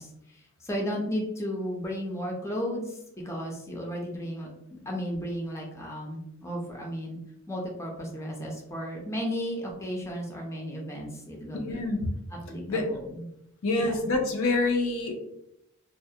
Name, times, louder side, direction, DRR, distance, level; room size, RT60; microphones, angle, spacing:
voice 1, 0.0-7.2 7.5-11.8 12.3-13.3 13.8-14.1, equal, 15° left, -1 dB, 0.4 m, -34 dB
voice 2, 11.6-12.0 12.7-12.8 13.6-15.1, left 2 dB, 70° left, 3 dB, 0.5 m, -26 dB
2.3 x 2.0 x 2.6 m, 0.79 s
head